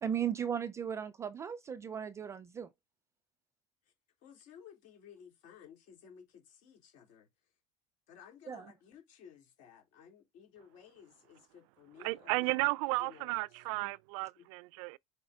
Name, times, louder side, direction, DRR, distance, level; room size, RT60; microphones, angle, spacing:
voice 1, 0.0-2.7 8.5-8.7, right 8 dB, 15° right, 0.3 m, -36 dB
voice 2, 4.2-7.3 8.1-13.6 14.4-14.5, left 8 dB, 50° left, 3.6 m, -56 dB
voice 3, 12.0-15.0, right 23 dB, 90° right, 0.4 m, -33 dB
6.9 x 4.9 x 3.6 m
cardioid pair, 180°, 17 cm